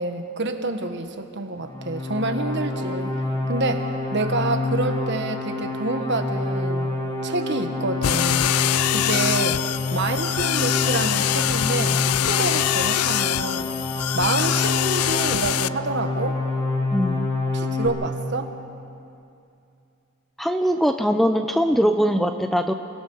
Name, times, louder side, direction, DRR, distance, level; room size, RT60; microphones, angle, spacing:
voice 1, 0.0-3.1 3.5-6.9 7.2-8.5 8.9-9.6 9.9-13.7 14.1-16.4 17.5-18.5, right 2 dB, 50° right, 6 dB, 1.4 m, -27 dB
sound 1, 1.6-17.9, left 2 dB, 20° left, 4.3 m, -27 dB
sound 2, 8.0-15.7, left 13 dB, 85° left, 0.4 m, -24 dB
voice 2, 16.9-17.3 20.4-22.7, equal, ahead, 7 dB, 0.5 m, -21 dB
29.5 x 17.5 x 5.5 m, 2.6 s
head